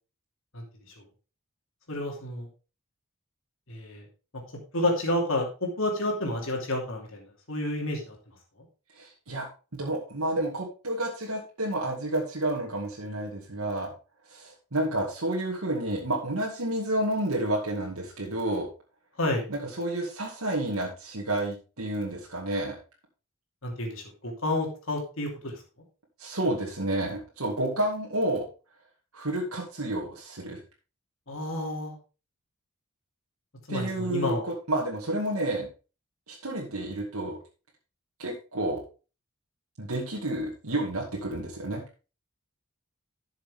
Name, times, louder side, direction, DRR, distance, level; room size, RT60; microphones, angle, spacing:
voice 1, 1.9-2.5 3.7-4.0 4.7-8.2 19.2-19.4 23.6-25.5 31.3-32.0 33.7-34.5, left 1 dB, 65° left, 1 dB, 2.7 m, -30 dB
voice 2, 9.0-9.5 9.7-13.9 14.3-18.7 19.5-22.8 26.2-28.4 29.1-30.6 33.7-35.7 36.3-37.4 38.2-38.8 39.8-41.8, right 1 dB, 85° right, -2 dB, 2.2 m, -30 dB
12.0 x 6.6 x 3.6 m, 0.33 s
head